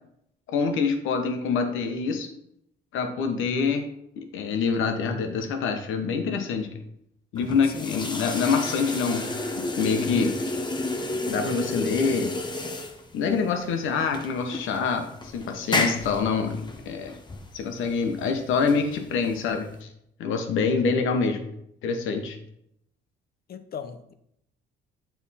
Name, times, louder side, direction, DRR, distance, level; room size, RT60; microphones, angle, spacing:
voice 1, 0.5-2.3 2.9-3.9 4.2-6.7 7.3-9.3 9.5-10.4 11.3-12.3 13.1-17.2 17.5-19.9 20.2-21.4 21.8-22.4, left 5 dB, 85° left, 5 dB, 1.0 m, -26 dB
sound 1, 7.4-19.8, left 2 dB, 20° left, 0.8 m, -32 dB
voice 2, 7.6-8.1 23.5-24.1, left 7 dB, 50° left, 9 dB, 0.6 m, -38 dB
7.1 x 3.5 x 4.2 m, 0.76 s
cardioid pair, 90°, 20 cm